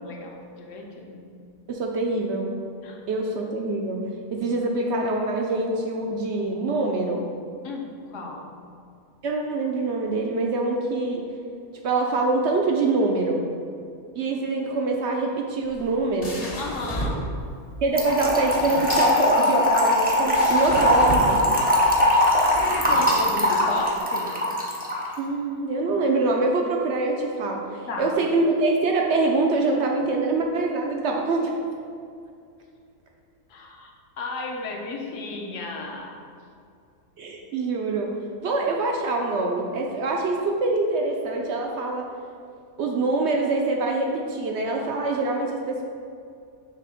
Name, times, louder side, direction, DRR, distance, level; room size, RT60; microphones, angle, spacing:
voice 1, 0.0-1.3 2.8-3.0 7.6-8.6 16.6-17.3 22.5-24.4 27.9-28.1 33.5-33.9 34.2-36.2, left 2 dB, 60° left, 1 dB, 1.0 m, -34 dB
voice 2, 1.7-2.5 3.1-4.0 4.3-7.3 9.2-11.3 11.8-13.4 14.2-16.4 17.8-21.5 25.2-27.6 28.0-31.5 37.2-38.1 38.4-42.0 42.8-45.8, right 3 dB, 65° right, 0 dB, 0.7 m, -24 dB
sound 1, 15.6-24.0, equal, 30° left, 0.7 m, -33 dB
Trickle dribble / Fill (with liquid), 18.0-25.1, left 1 dB, 10° right, 0.4 m, -21 dB
6.7 x 2.9 x 4.9 m, 2.4 s
omnidirectional pair, 1.6 m